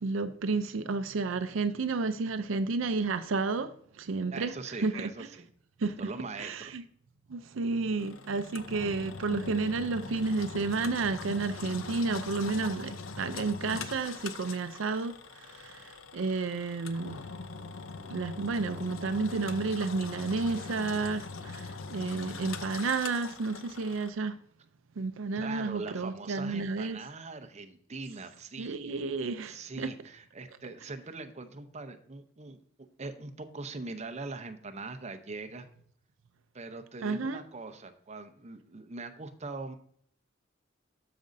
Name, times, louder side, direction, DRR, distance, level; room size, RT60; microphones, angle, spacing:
voice 1, 0.0-5.3 5.8-6.0 6.4-6.8 7.3-17.2 18.1-24.4 25.0-27.0 28.6-29.9 37.0-37.4, right 4 dB, 75° right, 0.5 m, -31 dB
voice 2, 4.3-5.4 6.0-6.7 25.4-28.7 29.4-32.6 33.0-35.7 36.5-39.8, right 3 dB, 35° right, 0.7 m, -42 dB
Engine, 8.0-24.1, left 4 dB, 80° left, 0.6 m, -42 dB
12.5 x 5.1 x 2.6 m
head